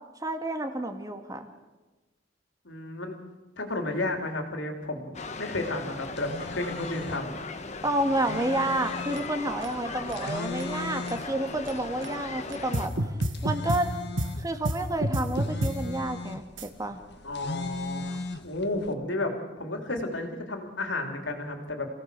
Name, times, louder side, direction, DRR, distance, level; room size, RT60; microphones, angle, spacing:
voice 1, 0.2-1.5 7.8-12.9 13.4-13.9 14.4-17.0, right 1 dB, 20° right, 6 dB, 2.0 m, -30 dB
voice 2, 2.6-3.2 3.6-7.4 17.2-21.9, left 2 dB, 85° left, 4 dB, 3.4 m, -32 dB
sound 1, 5.1-12.9, left 3 dB, 40° left, 1.4 m, -38 dB
sound 2, 6.0-18.9, left 3 dB, 60° left, 1.5 m, -40 dB
sound 3, 9.1-11.1 11.7-11.8 12.0-12.1 12.5-13.8 14.2-14.3 14.6-15.7 16.6-16.7, right 1 dB, 80° right, 2.0 m, -28 dB
28.5 x 17.0 x 6.8 m, 1.2 s
head